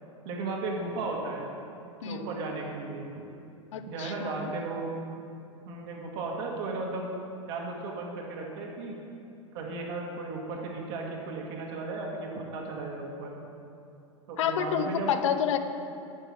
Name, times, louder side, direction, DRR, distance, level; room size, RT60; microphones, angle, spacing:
voice 1, 0.2-1.4 2.0-3.2 3.9-4.9 5.6-7.1 7.4-9.0 9.5-13.3 14.3-15.1, right 3 dB, 60° right, -1 dB, 1.9 m, -35 dB
voice 2, 3.7-4.5 14.4-15.6, left 8 dB, 70° left, 9 dB, 0.6 m, -29 dB
9.0 x 7.0 x 4.6 m, 2.6 s
hypercardioid pair, 95°, 16 cm